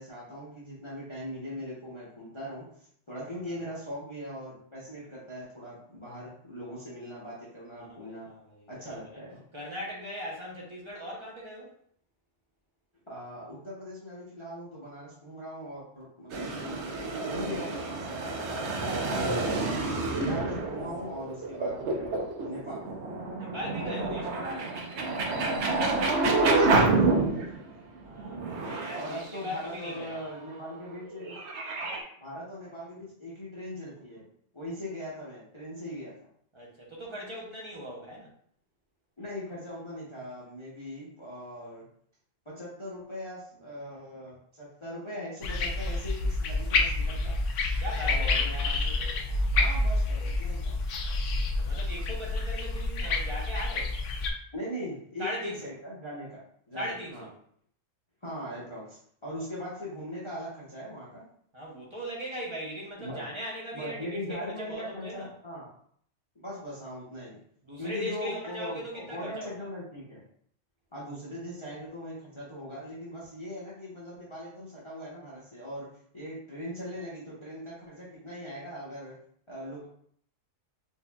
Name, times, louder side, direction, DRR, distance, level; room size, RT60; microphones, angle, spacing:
voice 1, 0.0-8.3 8.7-9.4 13.1-16.9 17.3-22.8 26.5-27.5 28.9-31.4 32.2-34.3 34.5-36.1 39.2-41.8 42.4-47.3 48.0-49.0 49.5-50.8 54.5-56.4 56.7-57.3 58.2-61.3 63.0-63.2 63.7-65.7 66.3-67.4 67.8-70.2 70.9-75.9 76.1-79.2 79.5-79.8, equal, 25° left, -7 dB, 0.8 m, -40 dB
voice 2, 7.8-9.2 9.5-11.7 23.4-24.7 28.0-30.2 36.5-38.3 47.8-48.5 51.6-53.9 55.2-55.7 56.7-57.3 61.5-65.3 67.6-69.7, equal, 25° right, -4 dB, 0.8 m, -39 dB
sound 1, 16.3-27.7 28.2-29.9 30.9-32.0, right 3 dB, 70° right, 0.9 m, -28 dB
sound 2, 45.4-54.3, left 2 dB, 75° left, 0.9 m, -28 dB
4.5 x 2.6 x 2.3 m, 0.64 s
omnidirectional pair, 1.3 m